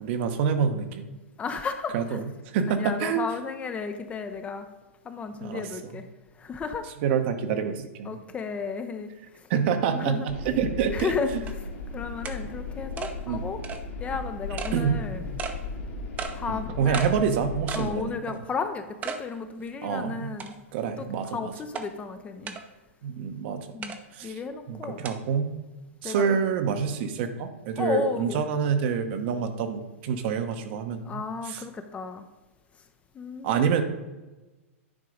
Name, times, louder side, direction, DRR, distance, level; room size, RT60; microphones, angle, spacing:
voice 1, 0.1-1.1 1.9-2.2 2.5-3.2 5.4-5.6 7.0-8.1 9.5-11.1 13.3-13.4 14.7-15.0 16.5-18.4 19.8-20.3 20.7-21.5 23.0-23.7 24.1-24.3 24.7-25.5 26.0-31.6 33.4-33.8, right 7 dB, 50° right, 8 dB, 0.9 m, -27 dB
voice 2, 1.4-2.2 2.8-4.7 5.0-6.1 6.4-6.9 8.0-9.5 9.8-10.3 10.9-13.6 14.0-15.3 16.3-17.1 17.7-20.5 21.0-22.6 23.7-25.0 26.0-26.4 27.8-28.4 31.0-32.2 33.1-33.7, left 5 dB, 15° left, 8 dB, 0.5 m, -33 dB
sound 1, 10.3-17.9, left 3 dB, 60° left, 1.7 m, -36 dB
sound 2, 10.3-10.4 11.0-11.1 11.5-11.6 12.2-12.4 13.0-13.1 13.6-13.8 14.6-14.8 15.4-15.6 16.2-16.4 16.9-17.1 17.7-17.9 18.3-18.4 19.0-19.2 19.7-19.8 20.4-20.8 21.7-21.9 22.5-22.6 23.8-24.0 25.0-25.1, right 6 dB, 20° right, 0.7 m, -34 dB
9.8 x 3.8 x 5.1 m, 1.1 s
hypercardioid pair, 130°, 7 cm